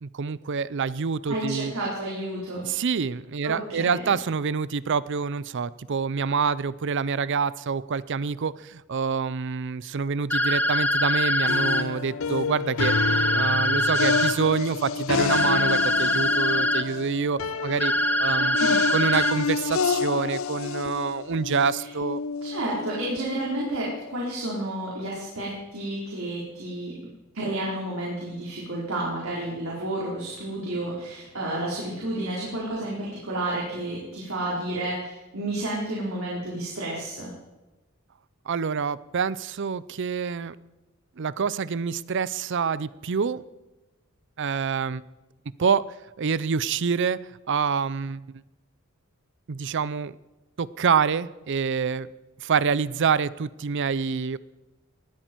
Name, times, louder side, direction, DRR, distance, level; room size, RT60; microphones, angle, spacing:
voice 1, 0.0-1.7 2.6-12.9 13.3-17.9 18.2-22.2 38.5-40.6 41.2-43.4 44.4-45.0 45.6-45.9 46.2-47.2 47.5-48.4 49.5-50.2 50.6-52.1 52.4-54.4, right 5 dB, 60° right, 19 dB, 0.5 m, -26 dB
voice 2, 1.3-2.6 3.4-4.0 18.3-18.9 22.4-27.0 27.3-37.3, right 1 dB, 85° right, -5 dB, 4.2 m, -31 dB
sound 1, 10.3-11.8 12.8-14.3 15.3-16.8 17.8-19.3, equal, 10° left, 0.8 m, -23 dB
sound 2, 11.5-24.1, left 5 dB, 70° left, 0.5 m, -29 dB
19.5 x 13.0 x 4.6 m, 1.1 s
head